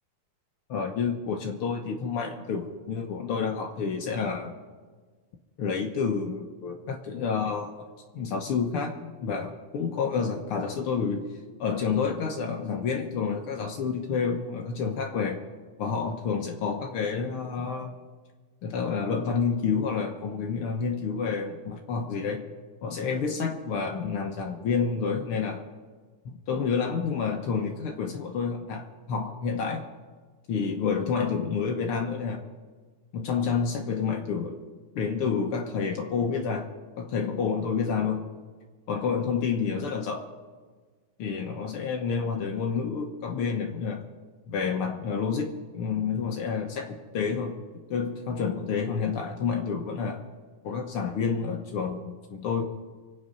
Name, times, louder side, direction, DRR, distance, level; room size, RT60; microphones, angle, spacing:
voice 1, 0.7-4.5 5.6-7.8 8.1-11.3 11.6-15.4 15.8-17.9 18.6-22.5 22.8-25.6 26.2-29.9 30.5-32.4 33.1-34.6 34.9-36.7 37.0-38.3 38.9-40.3 41.2-44.0 44.5-47.6 47.9-50.2 50.6-52.6, left 5 dB, 90° left, 3 dB, 1.2 m, -29 dB
25.0 x 8.8 x 5.4 m, 1.5 s
omnidirectional pair, 4.0 m